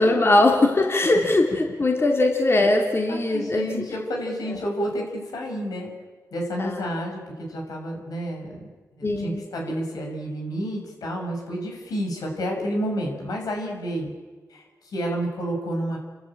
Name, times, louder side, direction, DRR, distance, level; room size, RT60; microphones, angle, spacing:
voice 1, 0.0-3.8 4.5-4.6 6.6-6.8 9.0-9.5, left 2 dB, 40° left, 1 dB, 3.3 m, -21 dB
voice 2, 3.3-5.9 6.3-7.2 7.5-8.7 9.0-14.1 14.5-16.0, equal, 90° left, 1 dB, 6.3 m, -30 dB
29.5 x 13.0 x 8.9 m, 1.4 s
cardioid pair, 65°, 6 cm